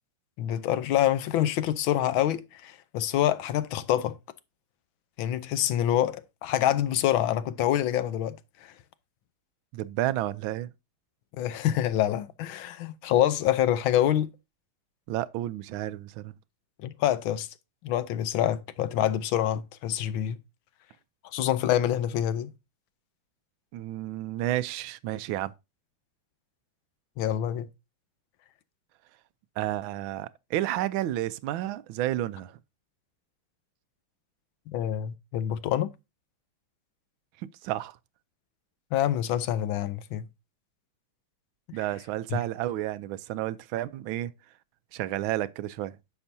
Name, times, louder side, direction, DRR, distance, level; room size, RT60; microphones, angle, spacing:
voice 1, 0.4-4.2 5.2-8.4 8.6-8.7 11.4-14.3 16.8-17.5 17.8-20.4 21.2-22.5 27.2-27.7 34.7-35.9 38.9-40.3 42.3-42.4, left 11 dB, 75° left, 1.5 m, -26 dB
voice 2, 9.7-10.7 15.1-16.3 23.7-25.5 29.6-32.6 37.6-38.0 41.7-44.3 44.9-45.9, right 14 dB, 75° right, 1.3 m, -31 dB
10.0 x 6.8 x 2.7 m
omnidirectional pair, 2.3 m